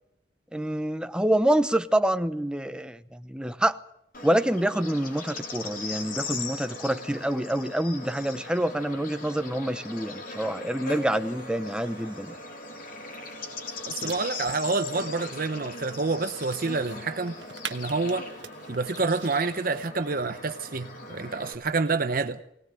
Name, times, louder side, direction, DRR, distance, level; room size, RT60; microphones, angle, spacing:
voice 1, 0.5-3.8 4.2-12.4, right 1 dB, 5° right, 0.8 m, -27 dB
Bird / Insect, 4.1-21.5, left 3 dB, 45° left, 3.5 m, -39 dB
sound 1, 11.1-19.9, right 7 dB, 70° right, 1.3 m, -47 dB
voice 2, 13.9-17.3 17.7-18.3 18.7-22.4, right 3 dB, 50° right, 0.8 m, -28 dB
21.0 x 18.5 x 7.8 m
head